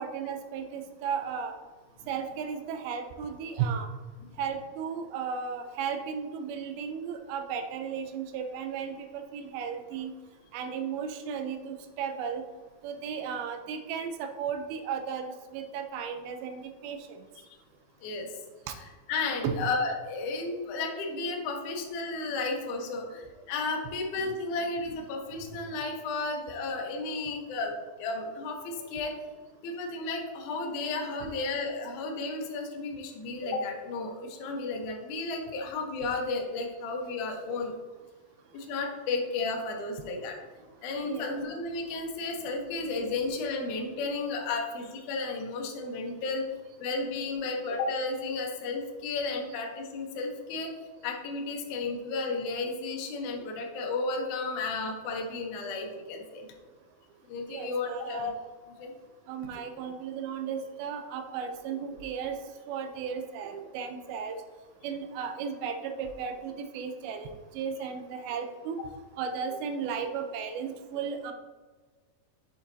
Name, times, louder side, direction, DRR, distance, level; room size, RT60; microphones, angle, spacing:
voice 1, 0.0-1.6 2.1-3.9 4.4-10.1 10.5-12.4 12.8-17.2 18.7-18.8 19.4-19.7 24.2-24.4 41.1-41.4 47.7-47.8 57.5-58.3 59.3-62.4 62.7-64.4 64.8-68.8 69.2-71.3, right 6 dB, 80° right, 6 dB, 2.3 m, -35 dB
voice 2, 18.0-18.3 19.1-29.3 29.6-37.7 38.5-40.4 40.8-46.5 46.8-50.7 51.0-56.5 57.2-58.3 58.8-58.9, left 3 dB, 70° left, 1 dB, 1.9 m, -33 dB
7.9 x 6.9 x 2.7 m, 1.4 s
omnidirectional pair, 4.7 m